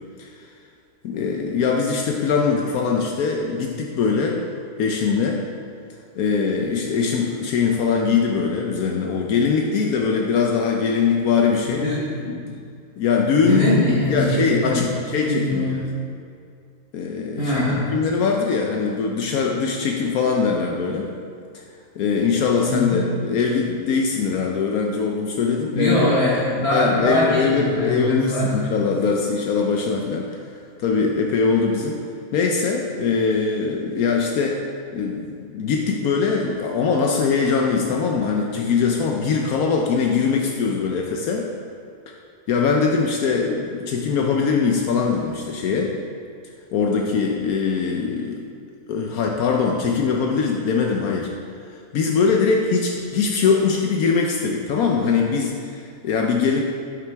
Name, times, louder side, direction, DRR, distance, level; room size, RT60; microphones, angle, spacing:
voice 1, 1.0-4.4 4.8-5.4 6.1-11.8 13.0-13.6 14.1-15.9 16.9-17.6 17.9-21.1 21.5-21.6 22.0-26.1 26.7-30.4 30.8-32.0 32.3-34.7 34.9-41.5 42.5-46.0 46.7-48.4 48.9-51.3 51.9-56.6, left 5 dB, 75° left, 1 dB, 1.2 m, -22 dB
voice 2, 11.6-12.5 13.4-14.9 15.3-15.8 17.4-18.0 22.7-23.2 25.7-28.6, left 1 dB, 45° left, -6 dB, 1.3 m, -22 dB
11.0 x 6.3 x 3.4 m, 2.3 s
omnidirectional pair, 1.6 m